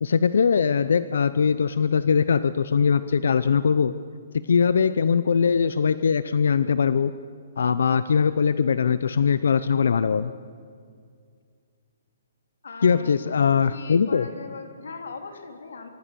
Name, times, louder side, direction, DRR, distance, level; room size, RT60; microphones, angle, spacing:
voice 1, 0.0-3.9 4.5-7.1 7.6-10.3 12.8-14.3, left 6 dB, 65° left, 14 dB, 0.7 m, -21 dB
voice 2, 12.6-13.1 13.7-15.9, left 4 dB, 85° left, 5 dB, 3.5 m, -39 dB
24.5 x 23.5 x 7.0 m, 2.2 s
hypercardioid pair, 180°, 0 cm